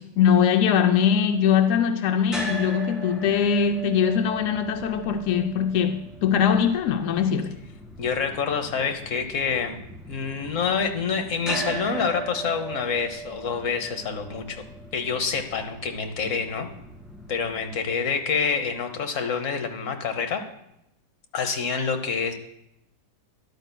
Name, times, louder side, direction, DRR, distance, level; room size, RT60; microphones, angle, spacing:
voice 1, 0.0-7.6, left 7 dB, 75° left, 7 dB, 0.7 m, -22 dB
sound 1, 2.3-18.4, right 2 dB, ahead, 1.8 m, -39 dB
voice 2, 8.0-9.8 10.1-14.6 14.9-16.7 17.3-20.4 21.3-22.3, left 5 dB, 50° left, 6 dB, 1.2 m, -27 dB
13.0 x 11.0 x 2.2 m, 0.83 s
omnidirectional pair, 1.9 m